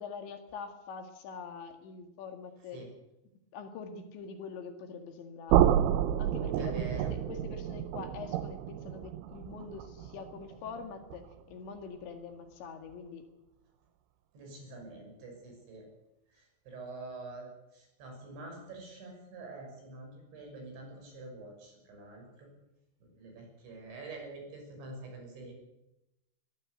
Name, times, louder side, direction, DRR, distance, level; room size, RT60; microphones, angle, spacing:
voice 1, 0.0-2.8 3.5-5.8 6.2-13.3, left 5 dB, 70° left, 6 dB, 4.0 m, -44 dB
sound 1, 5.5-11.4, right 11 dB, 85° right, 3.5 m, -30 dB
voice 2, 6.6-7.1 14.3-15.8 16.7-17.5 17.8-22.5 23.2-25.5, right 2 dB, 65° right, 2 dB, 8.5 m, -46 dB
22.5 x 15.0 x 8.2 m, 0.91 s
omnidirectional pair, 5.7 m